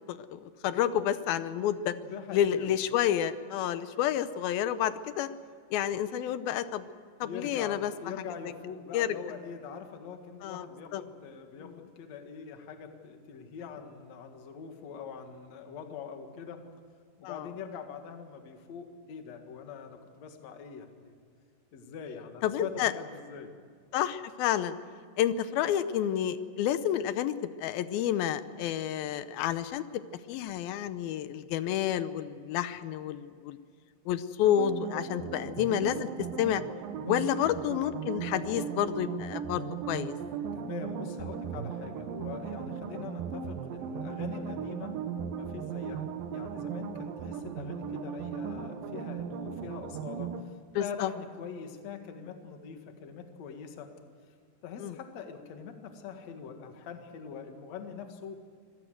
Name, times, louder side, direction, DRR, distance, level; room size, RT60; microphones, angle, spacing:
voice 1, 0.1-1.9 2.3-5.3 5.7-6.9 7.2-7.9 8.9-9.2 10.4-10.7 10.9-11.0 17.2-17.4 22.4-22.9 23.9-24.8 25.2-30.0 30.3-33.6 34.1-36.1 36.4-36.6 37.1-40.1 50.8-51.1 54.8-54.9, left 10 dB, 75° left, 13 dB, 2.3 m, -29 dB
voice 2, 1.9-2.7 7.2-16.7 17.2-21.1 21.7-23.5 37.0-37.5 40.5-45.0 45.4-50.5 50.8-53.9 54.6-58.3, left 6 dB, 50° left, 5 dB, 2.6 m, -43 dB
sound 1, 34.4-50.4, right 7 dB, 70° right, 2.4 m, -37 dB
25.5 x 19.0 x 8.0 m, 2.1 s
omnidirectional pair, 4.9 m